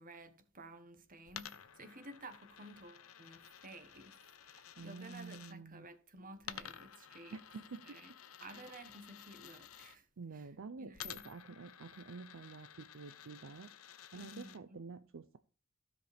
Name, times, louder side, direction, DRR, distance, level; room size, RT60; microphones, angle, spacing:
voice 1, 0.0-4.2 4.4-7.4 7.8-8.1 8.4-10.0 10.3-10.4 10.8-11.3 14.1-14.8, right 2 dB, 40° right, 1.2 m, -53 dB
Coin (dropping), 1.3-5.5 6.4-9.9 10.9-14.6, left 10 dB, 90° left, 0.7 m, -52 dB
voice 2, 4.8-5.9 7.3-8.2 8.5-8.8 10.2-15.4, right 4 dB, 65° right, 0.5 m, -49 dB
15.5 x 5.2 x 3.5 m
head